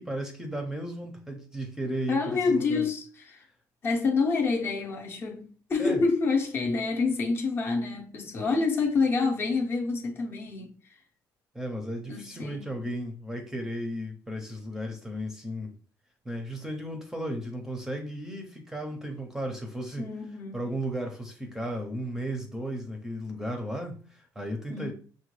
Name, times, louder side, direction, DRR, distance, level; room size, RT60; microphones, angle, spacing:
voice 1, 0.0-2.9 5.8-6.0 11.5-15.7 16.2-20.1 20.5-24.9, right 1 dB, 5° right, 0.6 m, -35 dB
voice 2, 2.1-3.4 3.8-10.7 12.1-12.7 20.0-20.6 24.7-24.9, left 4 dB, 35° left, 0.6 m, -27 dB
6.1 x 2.2 x 3.1 m
cardioid pair, 155°, 7 cm